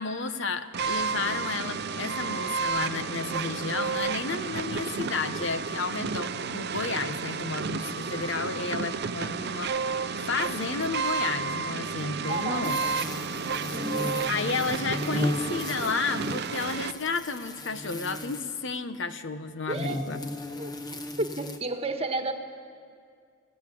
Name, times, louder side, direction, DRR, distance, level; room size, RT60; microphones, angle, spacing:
voice 1, 0.0-9.8 10.2-12.8 14.3-20.2, left 4 dB, 60° left, 10 dB, 1.1 m, -32 dB
sound 1, 0.7-16.9, right 5 dB, 50° right, 0.7 m, -31 dB
voice 2, 12.3-12.9 13.7-14.1 19.7-20.0 20.5-20.7 21.2-22.4, right 2 dB, 30° right, 6 dB, 1.5 m, -32 dB
sound 2, 12.6-18.6 19.7-21.6, left 1 dB, 20° left, 1.3 m, -35 dB
27.5 x 17.5 x 8.5 m, 2.2 s
head